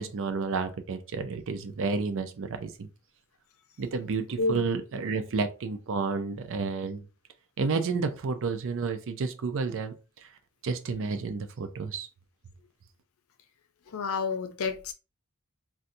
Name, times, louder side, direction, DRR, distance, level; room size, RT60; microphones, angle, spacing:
voice 1, 0.0-2.9 3.8-7.0 7.6-9.9 10.2-10.3 10.6-12.1, right 4 dB, 60° right, 0.5 m, -31 dB
voice 2, 13.9-14.9, left 4 dB, 65° left, 0.5 m, -29 dB
4.0 x 2.3 x 2.6 m
head